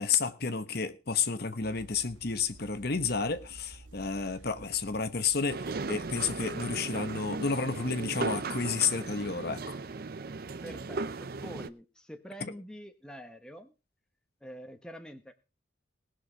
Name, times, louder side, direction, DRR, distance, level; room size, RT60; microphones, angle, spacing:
voice 1, 0.0-9.8 12.4-12.5, left 5 dB, 50° left, 1.1 m, -31 dB
sound 1, 1.6-6.8, right 2 dB, 75° right, 1.9 m, -53 dB
sound 2, 5.5-11.7, right 3 dB, 50° right, 0.6 m, -37 dB
voice 2, 10.6-13.7 14.4-15.3, equal, 5° left, 1.0 m, -46 dB
19.5 x 6.5 x 5.0 m
head